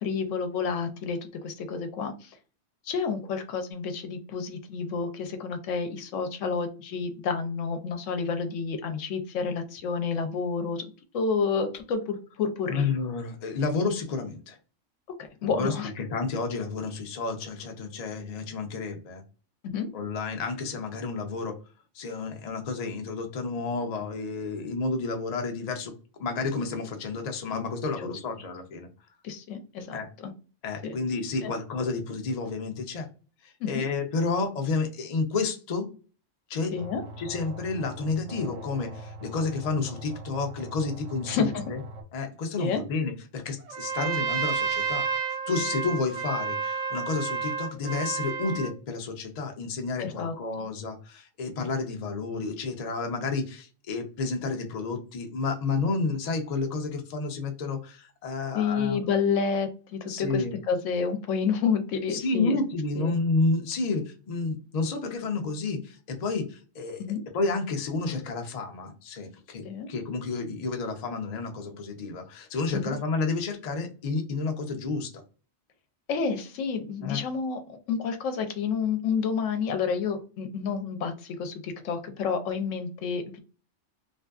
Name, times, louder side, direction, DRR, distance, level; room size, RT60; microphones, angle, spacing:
voice 1, 0.0-2.4 2.9-10.8 11.1-12.9 15.2-15.9 19.6-19.9 28.0-28.2 29.2-30.3 30.8-30.9 31.4-31.5 33.6-33.8 36.7-37.0 41.3-41.6 42.6-42.8 50.0-50.3 58.5-62.6 63.0-63.1 67.0-67.2 69.6-69.9 72.7-73.0 76.1-83.4, left 5 dB, 75° left, 7 dB, 0.9 m, -29 dB
voice 2, 12.7-14.6 15.4-19.2 19.9-21.6 21.9-25.9 26.2-28.9 29.9-30.1 30.6-33.1 33.4-35.9 36.5-36.8 37.2-41.8 42.1-45.1 45.5-59.1 60.1-60.5 62.1-67.0 67.3-75.1 77.0-77.2, left 4 dB, 55° left, 4 dB, 0.4 m, -30 dB
sound 1, 36.8-42.0, right 2 dB, 80° right, 1.0 m, -42 dB
Trumpet, 43.7-48.7, right 6 dB, 60° right, 0.4 m, -30 dB
2.6 x 2.4 x 2.3 m, 0.36 s
omnidirectional pair, 1.4 m